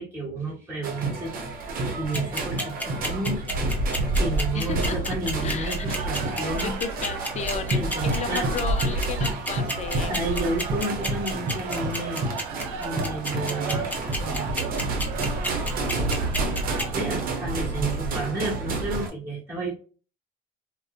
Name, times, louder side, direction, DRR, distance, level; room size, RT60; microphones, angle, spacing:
voice 1, 0.0-1.3 2.0-3.4 3.9-6.7 7.7-8.5 10.1-12.3 12.8-13.9 14.2-14.6 14.9-15.1 15.8-15.9 16.5-19.7, right 2 dB, 15° right, -6 dB, 1.1 m, -31 dB
sound 1, 0.8-19.1, right 2 dB, 55° right, 0.7 m, -29 dB
sound 2, 2.1-16.8, equal, 10° left, 0.8 m, -29 dB
voice 2, 4.5-5.2 5.4-6.0 6.5-10.2, left 6 dB, 40° left, 10 dB, 0.4 m, -33 dB
sound 3, 5.6-17.4, right 7 dB, 90° right, 0.5 m, -38 dB
2.6 x 2.1 x 2.3 m, 0.38 s
supercardioid pair, 80°, 18 cm